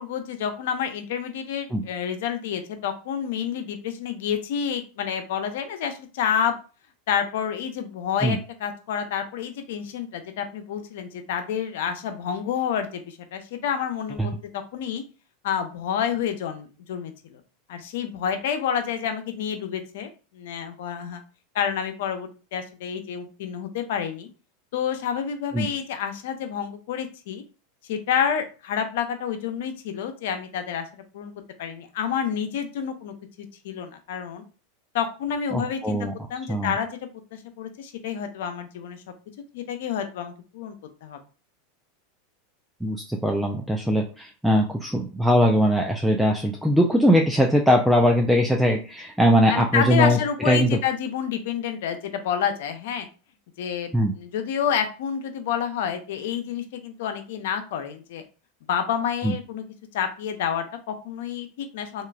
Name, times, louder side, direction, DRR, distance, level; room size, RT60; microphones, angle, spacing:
voice 1, 0.0-6.5 7.1-15.0 15.4-17.4 17.7-21.2 21.5-24.3 24.7-27.4 27.9-30.8 31.1-31.3 31.6-34.4 34.9-36.9 37.3-39.0 39.5-40.7 41.0-41.2 49.5-53.1 53.6-58.2 58.7-59.6 59.9-62.1, left 8 dB, 75° left, 8 dB, 0.5 m, -29 dB
voice 2, 35.5-36.1 36.5-36.7 42.8-50.2 50.5-50.8 53.9-54.1 59.2-59.3, equal, 5° right, 1 dB, 0.3 m, -20 dB
2.9 x 2.3 x 2.3 m, 0.35 s
hypercardioid pair, 115°, 0 cm